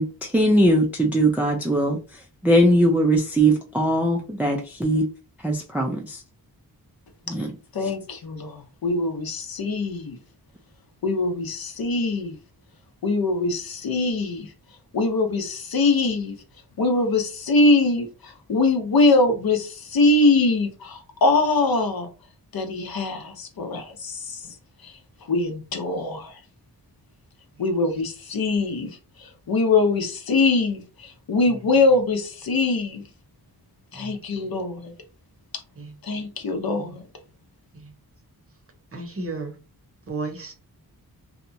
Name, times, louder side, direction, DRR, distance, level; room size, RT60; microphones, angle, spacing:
voice 1, 0.0-2.0 2.4-5.1 5.4-6.2 7.3-7.5, right 1 dB, 5° right, 0.3 m, -20 dB
voice 2, 7.7-10.2 11.0-12.4 13.0-14.5 14.9-16.4 16.8-22.1 22.5-24.6 24.8-26.4 27.6-33.0 33.9-34.9 36.0-37.0, left 3 dB, 65° left, 0.7 m, -23 dB
voice 3, 38.9-39.6 40.1-40.5, right 3 dB, 35° right, 0.7 m, -34 dB
2.8 x 2.2 x 2.6 m
wide cardioid pair, 95°, 38 cm